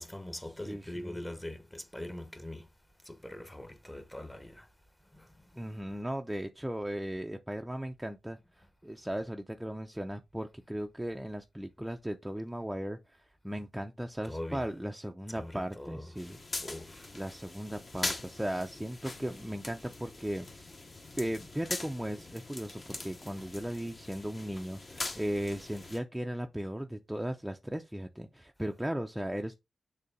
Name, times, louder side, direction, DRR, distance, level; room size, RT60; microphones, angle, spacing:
voice 1, 0.0-2.6 3.1-4.7 5.2-5.3 14.2-14.6 15.3-16.1 16.6-17.1, left 1 dB, 10° left, 0.9 m, -42 dB
voice 2, 0.7-1.2 5.6-16.4 17.1-20.7 21.2-29.5, right 1 dB, 5° right, 0.5 m, -37 dB
sound 1, 16.2-26.0, left 2 dB, 35° left, 1.0 m, -42 dB
6.7 x 2.7 x 5.3 m
wide cardioid pair, 105°, 0 cm